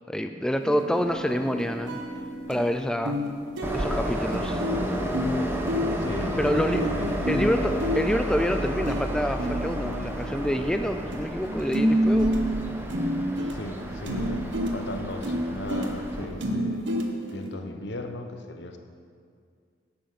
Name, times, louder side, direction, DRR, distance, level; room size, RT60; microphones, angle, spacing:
voice 1, 0.1-2.0 2.5-3.2 3.7-4.6 6.4-6.8 7.3-12.4, equal, 5° left, 6 dB, 0.3 m, -27 dB
sound 1, 0.6-2.7 3.1-3.3 3.6-11.2 11.4-17.5, equal, 90° right, 1.2 m, -29 dB
sound 2, 0.9-14.3, left 2 dB, 40° left, 3.0 m, -47 dB
Train, 3.6-16.3, equal, 10° right, 1.0 m, -31 dB
voice 2, 5.9-6.5 6.8-7.3 13.5-16.9 17.3-18.8, left 1 dB, 70° left, 6 dB, 1.0 m, -37 dB
10.5 x 8.7 x 6.0 m, 2.2 s
head